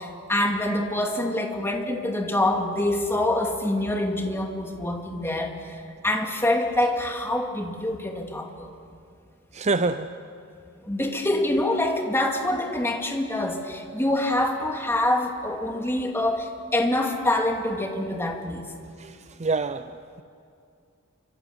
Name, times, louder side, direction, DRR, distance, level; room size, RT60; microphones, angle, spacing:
voice 1, 0.0-8.7 10.8-18.6, left 1 dB, 10° left, 2 dB, 2.5 m, -26 dB
voice 2, 9.5-10.1 19.0-19.9, right 3 dB, 30° right, 11 dB, 0.6 m, -26 dB
28.0 x 25.5 x 8.1 m, 2.3 s
head